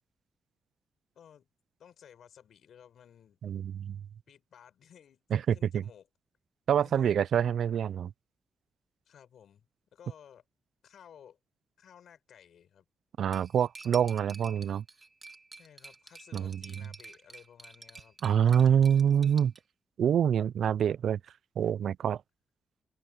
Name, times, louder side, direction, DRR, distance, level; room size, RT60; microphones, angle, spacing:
voice 1, 1.1-1.5 1.8-3.4 4.3-6.1 6.8-7.2 9.1-10.4 10.8-11.4 11.8-12.8 15.5-18.2, left 8 dB, 70° left, 4.7 m, -56 dB
voice 2, 3.4-4.0 5.3-5.8 6.7-8.1 13.2-14.8 16.3-16.6 18.2-19.5 20.0-21.2 21.6-22.2, right 8 dB, 65° right, 0.3 m, -26 dB
Cutlery silverware, 13.3-19.6, right 3 dB, 25° right, 1.9 m, -50 dB
open air
wide cardioid pair, 160°, 0 cm